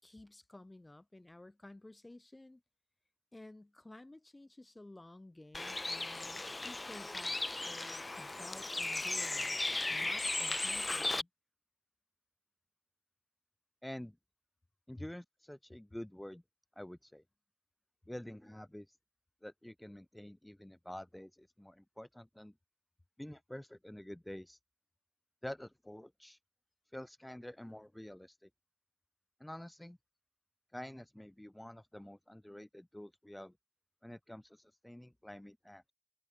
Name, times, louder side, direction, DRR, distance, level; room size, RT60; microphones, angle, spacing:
voice 1, 0.0-2.6 3.3-11.3 15.0-15.1, left 2 dB, 50° left, 4.7 m, -53 dB
Bird, 5.5-11.2, left 2 dB, 65° left, 2.0 m, -36 dB
voice 2, 13.8-14.2 14.9-16.4 16.8-17.2 18.1-19.0 19.4-22.5 23.2-24.6 25.4-26.4 26.9-28.5 29.4-30.0 30.7-33.5 34.0-35.9, left 1 dB, 20° left, 3.5 m, -48 dB
wide cardioid pair, 40°, 0 cm